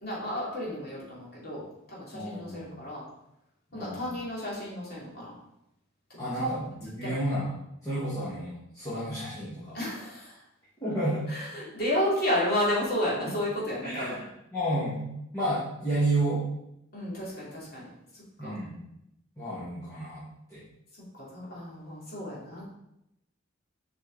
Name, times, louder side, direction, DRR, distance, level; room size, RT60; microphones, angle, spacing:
voice 1, 0.0-3.0 3.7-5.3 6.3-6.5 7.0-7.2 9.7-10.4 11.3-14.1 16.9-17.9 18.4-18.5 21.2-22.7, left 1 dB, 45° left, -7 dB, 3.0 m, -32 dB
voice 2, 2.1-2.7 3.7-4.1 6.2-7.5 7.8-9.8 10.8-11.2 13.2-13.3 13.8-15.1 15.3-16.5 18.4-18.8 19.4-20.2 20.5-20.6, right 1 dB, 15° left, -11 dB, 2.0 m, -31 dB
6.9 x 5.4 x 4.1 m, 0.83 s
head